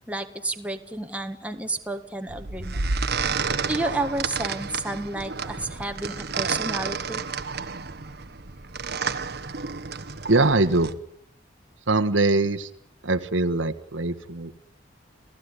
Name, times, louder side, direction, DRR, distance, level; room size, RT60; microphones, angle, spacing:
voice 1, 0.1-2.9 3.7-7.2, right 2 dB, 5° right, 5 dB, 1.8 m, -31 dB
sound 1, 2.3-10.9, right 5 dB, 55° right, 1.3 m, -30 dB
voice 2, 10.3-10.9 11.9-12.7 13.0-14.5, right 2 dB, 85° right, 8 dB, 1.5 m, -22 dB
29.0 x 17.5 x 9.9 m, 0.73 s
head